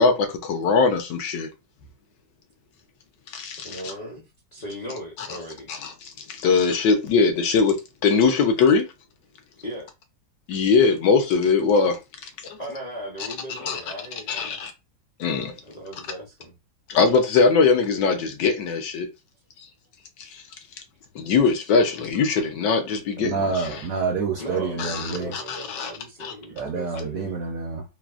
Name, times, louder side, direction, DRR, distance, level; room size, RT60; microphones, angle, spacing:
voice 1, 0.0-1.5 3.3-3.9 5.2-5.3 5.7-8.9 10.5-12.0 13.6-13.8 14.3-14.7 15.2-15.5 16.9-19.1 20.2-20.4 21.1-23.8 24.8-25.9 26.2-26.3, left 4 dB, 75° left, 1.2 m, -21 dB
voice 2, 3.6-4.2 4.5-5.7 9.6-9.9 12.6-14.6 15.7-16.6 24.4-27.4, equal, 50° left, 0.5 m, -37 dB
voice 3, 23.2-25.3 26.6-27.8, right 4 dB, 75° right, 0.8 m, -27 dB
3.2 x 2.0 x 2.4 m
omnidirectional pair, 1.9 m